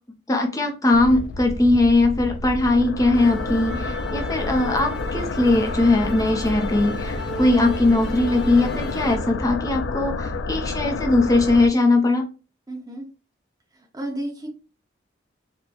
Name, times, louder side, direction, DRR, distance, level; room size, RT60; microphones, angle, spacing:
voice 1, 0.3-12.3, left 2 dB, 20° left, 2 dB, 0.6 m, -20 dB
sound 1, 0.9-11.7, left 3 dB, 85° left, 0.4 m, -29 dB
Musical instrument, 3.1-9.2, equal, 60° left, 0.7 m, -35 dB
voice 2, 3.5-3.9 12.7-13.1 13.9-14.5, right 1 dB, 20° right, 1 dB, 0.9 m, -33 dB
4.2 x 2.1 x 2.8 m, 0.33 s
head